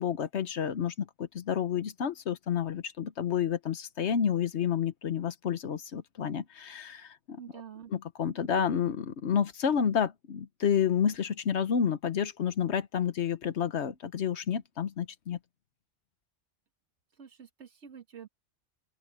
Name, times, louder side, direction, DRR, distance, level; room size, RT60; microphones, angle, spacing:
voice 1, 0.0-7.4 7.9-15.4, left 8 dB, 75° left, 1.2 m, -30 dB
voice 2, 7.4-7.9 17.2-18.3, right 8 dB, 85° right, 1.9 m, -47 dB
open air
omnidirectional pair, 1.2 m